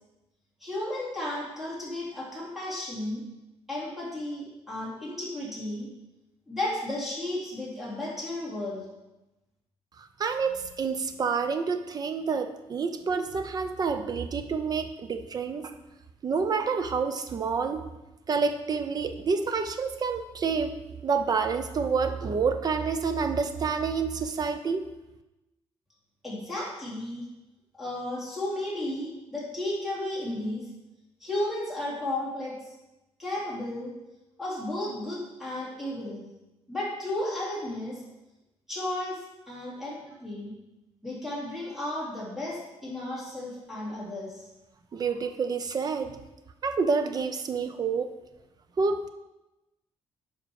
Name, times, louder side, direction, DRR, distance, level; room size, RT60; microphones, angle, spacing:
voice 1, 0.6-3.2 3.7-5.9 6.5-8.8 26.2-27.2 27.8-30.7 31.2-32.7 33.2-33.9 34.4-36.2 36.7-38.0 38.7-39.2 39.5-40.5 41.0-44.5, left 1 dB, 5° right, -7 dB, 3.4 m, -33 dB
voice 2, 10.0-15.7 16.2-17.9 18.3-20.7 21.0-24.9 44.9-46.2 46.6-48.1 48.8-49.1, right 5 dB, 40° right, 8 dB, 0.7 m, -28 dB
10.0 x 5.5 x 4.8 m, 0.99 s
cardioid pair, 145°, 11 cm